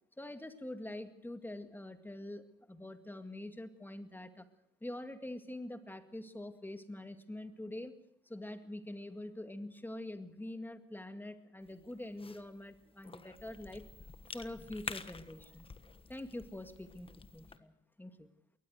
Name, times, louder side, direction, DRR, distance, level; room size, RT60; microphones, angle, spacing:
voice 1, 0.2-4.5 4.8-7.9 8.3-13.9 14.3-15.7 16.1-17.7 18.0-18.3, left 1 dB, 10° left, 8 dB, 2.1 m, -45 dB
Cough / Chewing mastication, 11.6-17.6, left 4 dB, 25° left, 1.3 m, -49 dB
22.0 x 18.5 x 6.5 m, 0.80 s
cardioid pair, 90°, 20 cm